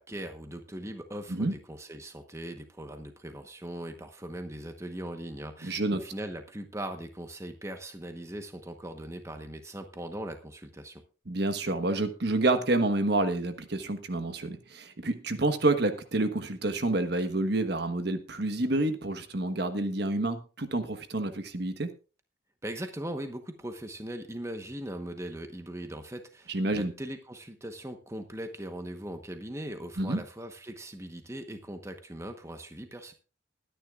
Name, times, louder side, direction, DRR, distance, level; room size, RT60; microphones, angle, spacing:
voice 1, 0.0-11.0 22.6-33.1, right 1 dB, 15° right, 6 dB, 1.1 m, -40 dB
voice 2, 5.6-6.0 11.3-21.9 26.5-26.9 30.0-30.2, right 2 dB, 60° right, 8 dB, 1.2 m, -28 dB
21.5 x 10.0 x 2.4 m, 0.34 s
head